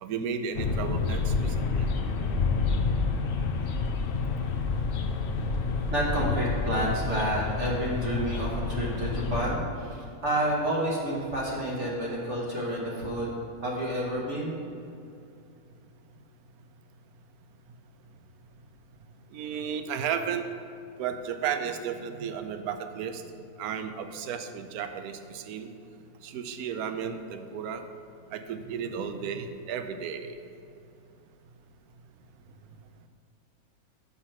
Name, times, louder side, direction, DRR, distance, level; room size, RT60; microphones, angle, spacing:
voice 1, 0.0-1.9 19.3-20.5 21.0-23.2 23.6-25.7 26.2-27.8 28.3-30.3, right 7 dB, 85° right, 8 dB, 1.1 m, -33 dB
sound 1, 0.5-9.5, left 4 dB, 70° left, 0.5 m, -29 dB
voice 2, 5.9-13.3 13.6-14.6, right 1 dB, 55° right, -4 dB, 1.3 m, -29 dB
5.8 x 5.5 x 5.9 m, 2.5 s
omnidirectional pair, 1.5 m